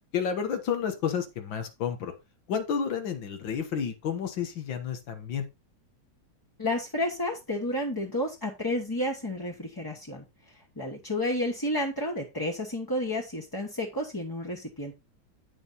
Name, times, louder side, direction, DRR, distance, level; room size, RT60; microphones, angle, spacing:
voice 1, 0.1-2.1 2.5-5.4, left 7 dB, 90° left, 7 dB, 2.0 m, -30 dB
voice 2, 6.6-10.2 10.8-14.9, left 1 dB, 15° left, 0 dB, 1.0 m, -31 dB
8.9 x 6.2 x 4.0 m, 0.24 s
omnidirectional pair, 2.0 m